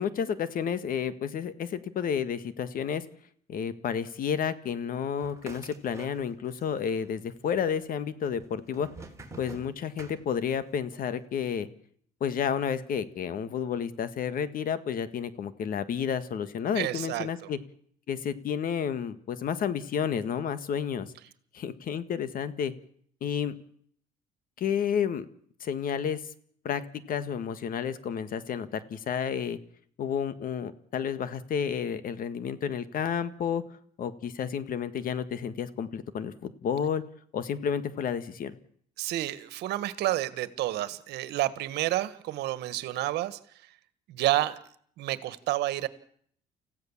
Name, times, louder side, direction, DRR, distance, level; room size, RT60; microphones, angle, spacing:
voice 1, 0.0-3.0 3.5-8.9 9.4-11.7 12.2-17.6 18.1-21.1 21.5-22.7 23.2-23.5 24.6-25.2 25.6-26.2 26.6-26.8 27.1-29.6 30.0-33.6 34.0-37.0 37.3-38.5, left 7 dB, 55° left, 13 dB, 1.7 m, -31 dB
sound 1, 5.2-6.6 6.9-7.6 8.3-10.7, right 3 dB, 15° right, 3.8 m, -47 dB
voice 2, 16.7-17.5 39.0-43.4 44.1-44.6 45.0-45.9, right 15 dB, 80° right, 15 dB, 1.6 m, -30 dB
29.5 x 15.5 x 7.3 m, 0.63 s
cardioid pair, 110°, 17 cm